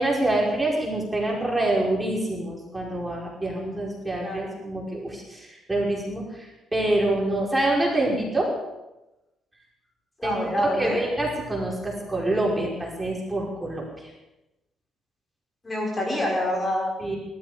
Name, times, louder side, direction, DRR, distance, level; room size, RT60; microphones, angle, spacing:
voice 1, 0.0-8.5 10.2-14.1 17.0-17.2, right 1 dB, 15° right, -3 dB, 5.2 m, -26 dB
voice 2, 10.2-11.0 15.6-17.2, left 1 dB, 25° left, -1 dB, 5.1 m, -26 dB
19.0 x 13.5 x 5.1 m, 0.98 s
cardioid pair, 90°, 0 cm